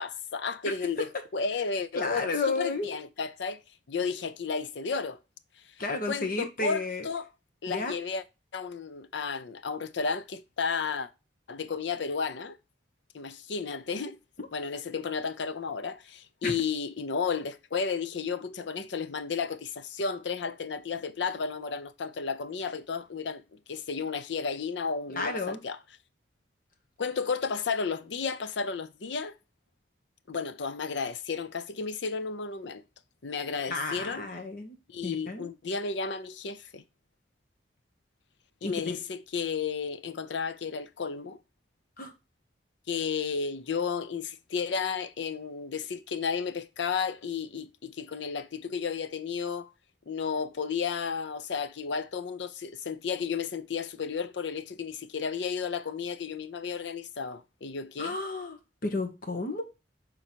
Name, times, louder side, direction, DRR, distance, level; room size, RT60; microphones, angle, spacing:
voice 1, 0.0-3.6 3.9-5.2 6.1-7.3 7.6-8.2 8.5-11.1 11.5-12.6 13.1-14.2 14.5-25.8 27.0-29.4 30.3-32.8 33.2-34.3 34.9-36.8 38.6-41.4 42.9-49.7 50.1-58.2, left 5 dB, 75° left, 0.5 m, -33 dB
voice 2, 1.9-2.9 5.8-7.1 7.7-7.9 16.4-16.5 25.1-25.6 33.7-34.8 35.0-35.5 38.6-39.0 42.0-42.1 58.0-59.6, left 3 dB, 50° left, 1.2 m, -32 dB
5.5 x 3.9 x 4.4 m
head